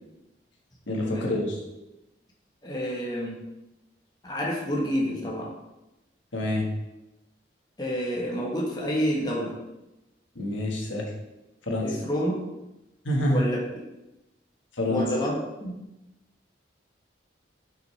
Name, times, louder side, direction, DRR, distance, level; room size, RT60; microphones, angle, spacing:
voice 1, 0.9-1.6 6.3-6.7 10.3-11.1 11.7-12.0 13.0-13.5 14.8-15.0, left 1 dB, 90° left, -1 dB, 1.5 m, -27 dB
voice 2, 2.6-3.4 4.2-5.5 7.8-9.6 11.8-12.4 13.3-13.6 14.9-15.3 15.6-15.8, equal, 20° left, -3 dB, 1.1 m, -28 dB
7.7 x 5.3 x 3.3 m, 0.96 s
head